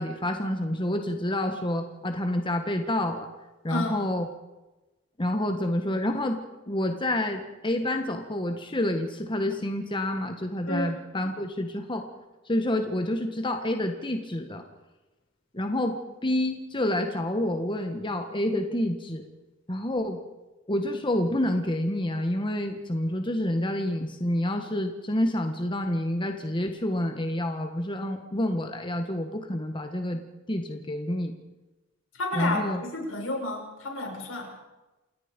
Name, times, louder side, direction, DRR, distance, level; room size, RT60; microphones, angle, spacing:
voice 1, 0.0-3.3 3.6-4.3 5.2-6.4 6.7-12.0 12.5-14.6 15.5-19.3 19.7-20.2 20.7-30.2 30.5-31.3 32.3-32.8, left 1 dB, 25° left, 5 dB, 1.5 m, -28 dB
voice 2, 3.7-4.0 10.7-10.9 32.2-34.5, left 2 dB, 85° left, 1 dB, 7.0 m, -31 dB
28.5 x 18.5 x 5.3 m, 1.1 s
head